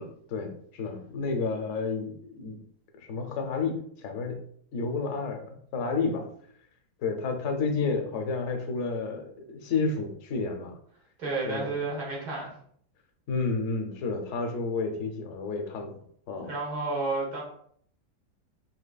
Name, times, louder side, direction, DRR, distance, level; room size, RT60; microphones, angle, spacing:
voice 1, 0.0-2.6 3.0-4.4 4.7-6.3 7.0-10.7 11.5-11.7 13.3-16.0 16.3-16.5, left 4 dB, 55° left, 4 dB, 0.9 m, -31 dB
voice 2, 11.2-12.5 16.4-17.4, right 3 dB, 60° right, -3 dB, 2.1 m, -31 dB
5.6 x 3.3 x 2.3 m, 0.62 s
omnidirectional pair, 1.9 m